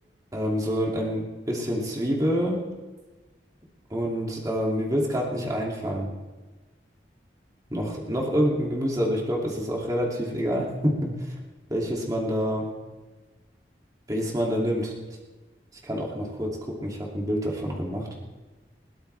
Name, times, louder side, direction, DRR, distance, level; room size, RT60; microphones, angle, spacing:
voice 1, 0.3-2.7 3.9-6.1 7.7-11.3 11.7-12.7 14.1-14.9 15.8-18.1, equal, 20° right, -2 dB, 2.5 m, -27 dB
21.0 x 16.0 x 3.4 m, 1.3 s
head